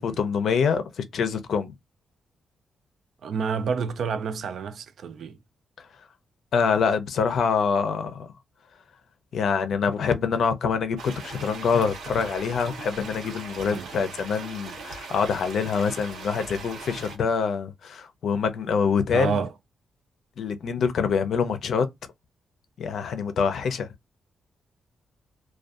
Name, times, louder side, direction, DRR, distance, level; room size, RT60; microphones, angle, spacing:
voice 1, 0.0-1.7 6.5-8.3 9.3-19.4 20.4-21.9 22.8-23.9, left 6 dB, 65° left, 0.5 m, -25 dB
voice 2, 3.2-5.4 13.6-13.9 19.1-19.5, right 6 dB, 65° right, 0.3 m, -29 dB
sound 1, 11.0-17.2, right 4 dB, 85° right, 0.8 m, -40 dB
2.5 x 2.2 x 2.4 m
wide cardioid pair, 145°, 0 cm